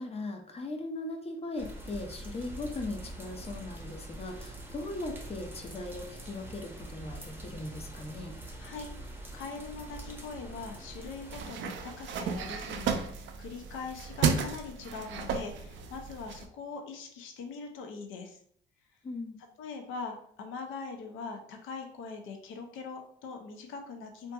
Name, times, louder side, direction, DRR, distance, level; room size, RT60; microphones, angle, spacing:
voice 1, 0.0-8.3 19.0-19.4, left 2 dB, 30° left, 4 dB, 0.5 m, -39 dB
sound 1, 1.6-11.5, right 1 dB, 10° right, 0.6 m, -44 dB
voice 2, 8.6-18.4 19.6-24.3, left 4 dB, 90° left, 4 dB, 0.5 m, -42 dB
sound 2, 11.3-16.5, right 6 dB, 70° right, 0.4 m, -33 dB
2.6 x 2.5 x 2.3 m, 0.62 s
cardioid pair, 90°, 20 cm